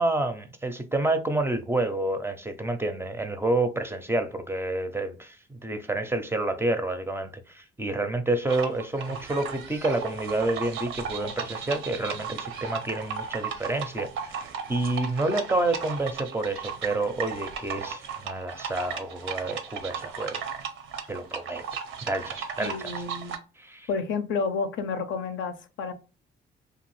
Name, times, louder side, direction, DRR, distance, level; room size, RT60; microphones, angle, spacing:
voice 1, 0.0-20.4 21.1-21.6 22.0-22.9 23.6-23.9, right 2 dB, 10° right, 0.4 m, -29 dB
sound 1, 8.5-23.4, right 7 dB, 80° right, 0.6 m, -36 dB
voice 2, 22.6-23.4 23.9-25.9, left 4 dB, 75° left, 0.5 m, -30 dB
2.8 x 2.4 x 3.0 m
cardioid pair, 90°, 20 cm